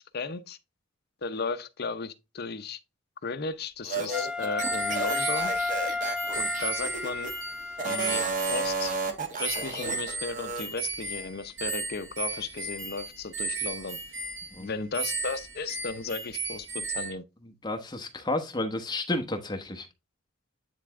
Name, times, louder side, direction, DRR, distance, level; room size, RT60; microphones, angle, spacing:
voice 1, 0.1-0.6 1.2-2.8 3.2-5.5 6.3-7.3 7.9-8.9 9.4-14.0 14.6-17.2, left 4 dB, 50° left, 0.6 m, -35 dB
sound 1, 3.8-7.3 7.7-10.6, right 3 dB, 35° right, 1.2 m, -32 dB
Wind instrument woodwind instrument, 4.1-8.4, left 3 dB, 5° right, 0.3 m, -32 dB
sound 2, 4.6-9.1 9.4-17.1, right 3 dB, 60° right, 1.4 m, -35 dB
voice 2, 17.6-19.9, left 2 dB, 20° left, 1.0 m, -31 dB
9.6 x 3.4 x 3.6 m
head